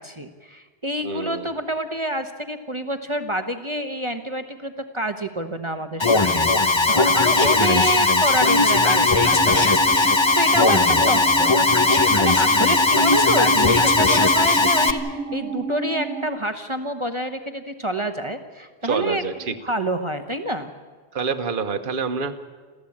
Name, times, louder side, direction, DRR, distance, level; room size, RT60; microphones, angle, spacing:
voice 1, 0.0-9.8 10.3-11.5 12.2-19.2 19.6-20.7, right 1 dB, 25° right, 7 dB, 1.1 m, -27 dB
voice 2, 1.0-1.5 7.3-7.8 10.6-11.1 18.8-19.6 21.1-22.4, right 5 dB, 50° right, 7 dB, 1.3 m, -28 dB
Alarm, 6.0-14.9, left 3 dB, 25° left, 1.0 m, -18 dB
sound 1, 9.2-16.3, right 4 dB, 80° right, 1.1 m, -31 dB
26.5 x 15.0 x 8.7 m, 1.5 s
omnidirectional pair, 1.2 m